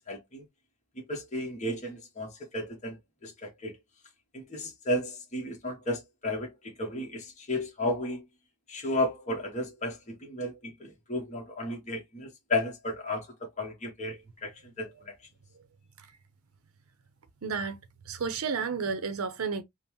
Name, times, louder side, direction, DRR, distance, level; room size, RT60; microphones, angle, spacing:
voice 1, 0.1-0.4 1.0-3.0 3.2-3.8 4.3-8.2 8.7-13.3 13.6-15.1, left 1 dB, 35° left, 1.0 m, -33 dB
voice 2, 17.4-17.8 18.1-19.6, right 5 dB, 70° right, 0.6 m, -31 dB
5.3 x 2.1 x 2.9 m
head